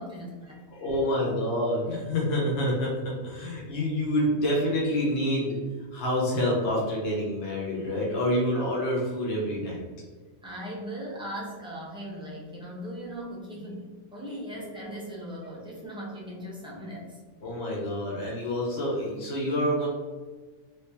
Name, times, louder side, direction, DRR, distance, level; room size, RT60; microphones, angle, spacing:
voice 1, 0.0-0.6 8.5-8.6 10.4-17.2, equal, 5° right, -5 dB, 0.5 m, -38 dB
voice 2, 0.7-5.6 5.9-9.8 17.4-19.9, left 1 dB, 50° left, -4 dB, 1.0 m, -27 dB
3.4 x 3.1 x 2.8 m, 1.4 s
omnidirectional pair, 1.4 m